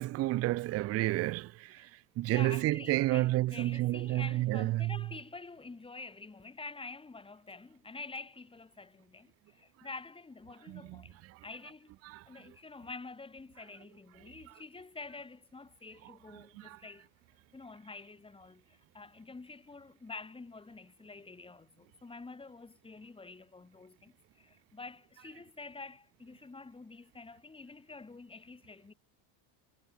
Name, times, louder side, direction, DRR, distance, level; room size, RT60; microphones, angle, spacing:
voice 1, 0.0-1.9 2.2-5.0 10.7-11.0 12.1-12.2 16.6-16.8, right 17 dB, 30° right, 0.5 m, -30 dB
voice 2, 2.3-11.9 12.3-17.1 17.5-28.9, left 3 dB, 10° left, 7.8 m, -48 dB
cardioid pair, 165°, 49 cm